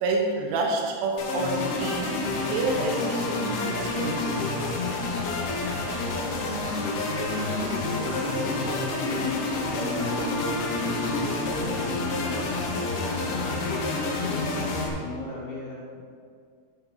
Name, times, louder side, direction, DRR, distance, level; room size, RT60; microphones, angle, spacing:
voice 1, 0.0-2.1 2.5-4.5, right 3 dB, 75° right, 1 dB, 2.5 m, -28 dB
sound 1, 1.2-14.9, left 3 dB, 80° left, 3.0 m, -29 dB
sound 2, 7.1-12.6, right 1 dB, 25° right, 1.1 m, -38 dB
voice 2, 8.1-16.0, left 2 dB, 65° left, -6 dB, 3.5 m, -36 dB
9.1 x 5.9 x 5.5 m, 2.1 s
omnidirectional pair, 4.4 m